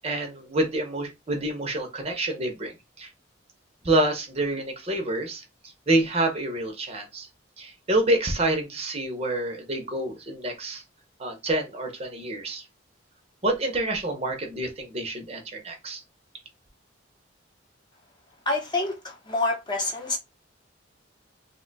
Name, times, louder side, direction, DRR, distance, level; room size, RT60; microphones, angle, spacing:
voice 1, 0.0-3.1 3.8-5.4 5.9-7.3 7.6-10.8 11.2-12.7 13.4-16.0, right 1 dB, 30° right, 0.7 m, -27 dB
voice 2, 18.5-20.2, left 2 dB, 25° left, 0.7 m, -27 dB
2.7 x 2.2 x 3.9 m
head